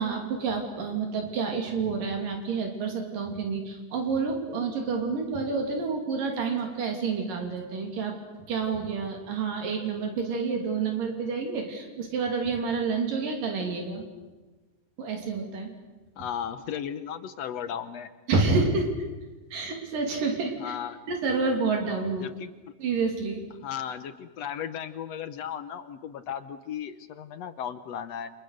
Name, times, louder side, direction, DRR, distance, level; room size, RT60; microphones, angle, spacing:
voice 1, 0.0-8.1 8.5-14.0 15.0-15.7 18.3-18.9 19.5-20.7 21.1-22.3 22.8-23.4, right 4 dB, 85° right, 3 dB, 4.6 m, -29 dB
voice 2, 16.2-18.1 20.6-21.0 22.2-22.5 23.6-28.3, left 9 dB, 65° left, 11 dB, 1.8 m, -35 dB
29.0 x 26.5 x 6.6 m, 1.2 s
omnidirectional pair, 3.8 m